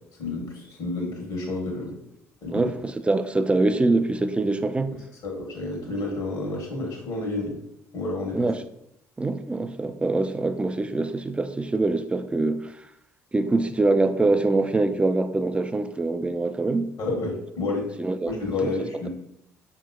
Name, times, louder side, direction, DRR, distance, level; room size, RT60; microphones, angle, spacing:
voice 1, 0.2-2.0 2.4-2.7 5.2-7.6 7.9-8.5 17.0-17.9 18.2-19.1, left 2 dB, 60° left, -1 dB, 1.3 m, -30 dB
voice 2, 2.5-5.0 8.3-8.5 9.2-12.8 13.3-17.0 18.0-18.3 18.6-18.7, right 2 dB, 15° right, 10 dB, 0.3 m, -24 dB
5.6 x 2.8 x 2.3 m, 0.78 s
hypercardioid pair, 50°, 8 cm